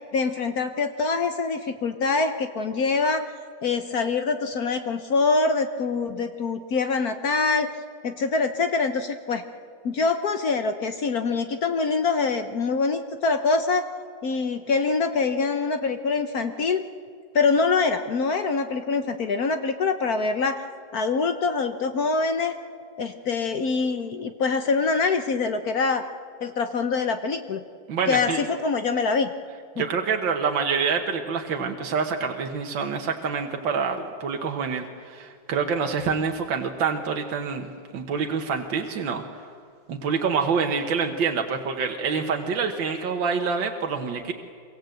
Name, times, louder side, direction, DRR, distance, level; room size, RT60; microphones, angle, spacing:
voice 1, 0.1-3.2 3.6-7.7 8.0-9.4 9.8-13.9 14.2-16.8 17.3-20.6 20.9-22.6 23.0-26.0 26.4-27.6 28.1-29.3 29.8-29.9, left 4 dB, 55° left, 7 dB, 1.4 m, -24 dB
voice 2, 27.9-28.4 29.8-39.2 39.9-44.3, right 5 dB, 80° right, 3 dB, 2.1 m, -26 dB
25.0 x 24.0 x 7.9 m, 2.2 s
omnidirectional pair, 2.0 m